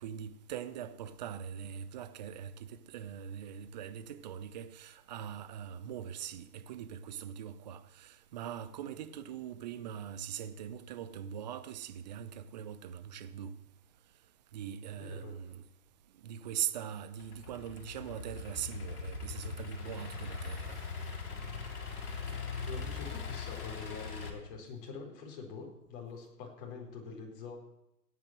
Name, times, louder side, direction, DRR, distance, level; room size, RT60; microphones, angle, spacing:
voice 1, 0.0-13.5 14.5-15.6 16.2-20.8, right 9 dB, 25° right, 0.8 m, -41 dB
voice 2, 14.9-15.4 22.3-27.6, left 5 dB, 30° left, 4.4 m, -45 dB
Idling / Accelerating revving vroom, 17.2-24.3, left 5 dB, 65° left, 4.0 m, -41 dB
17.5 x 9.5 x 6.1 m
hypercardioid pair, 135°, 49 cm